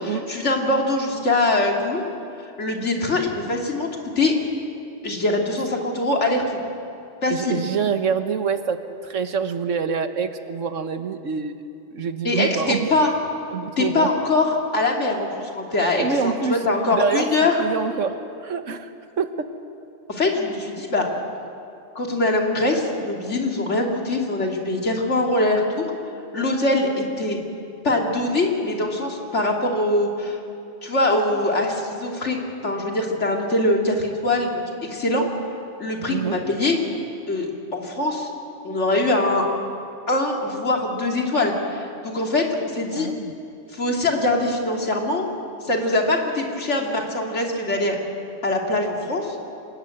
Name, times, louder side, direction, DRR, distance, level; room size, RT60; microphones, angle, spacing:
voice 1, 0.0-2.0 2.6-3.9 4.2-4.3 5.0-6.6 7.2-7.6 12.2-13.1 13.8-17.6 20.1-21.1 21.9-25.9 26.3-27.4 27.8-30.4 30.8-32.4 32.6-35.3 35.8-36.8 37.3-38.3 38.6-39.4 40.1-43.1 43.7-45.3 45.6-48.0 48.4-49.4, left 2 dB, 70° left, 0 dB, 3.0 m, -23 dB
voice 2, 7.3-11.6 11.9-12.9 13.5-14.1 16.0-16.6 16.9-19.5 36.1-36.4 43.0-43.3, right 6 dB, 85° right, 9 dB, 1.5 m, -26 dB
26.5 x 19.5 x 7.8 m, 2.6 s
omnidirectional pair, 1.3 m